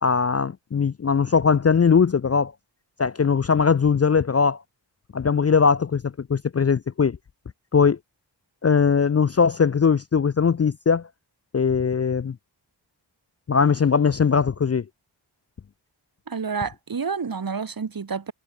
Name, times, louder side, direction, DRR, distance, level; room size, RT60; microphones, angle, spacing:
voice 1, 0.0-2.5 3.0-4.6 5.1-7.2 7.7-8.0 8.6-11.1 11.5-12.4 13.5-14.8, left 6 dB, 35° left, 0.5 m, -20 dB
voice 2, 16.3-18.3, right 5 dB, 50° right, 1.3 m, -29 dB
wide cardioid pair, 55°, 45 cm